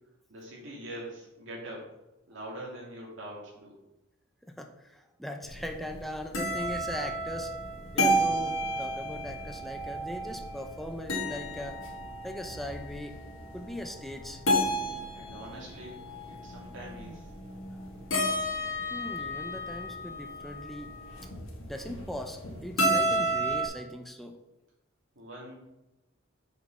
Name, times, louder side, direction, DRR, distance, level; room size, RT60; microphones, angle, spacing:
voice 1, 0.3-1.9 2.3-3.8 15.1-17.3 25.1-25.5, right 1 dB, 65° right, -5 dB, 2.5 m, -43 dB
voice 2, 4.4-7.5 7.9-11.8 12.2-13.2 13.5-14.4 18.9-20.9 21.2-21.3 21.7-24.4, equal, ahead, 4 dB, 0.6 m, -39 dB
sound 1, 5.4-23.7, right 1 dB, 70° left, 1.6 m, -32 dB
6.5 x 5.2 x 5.5 m, 0.97 s
head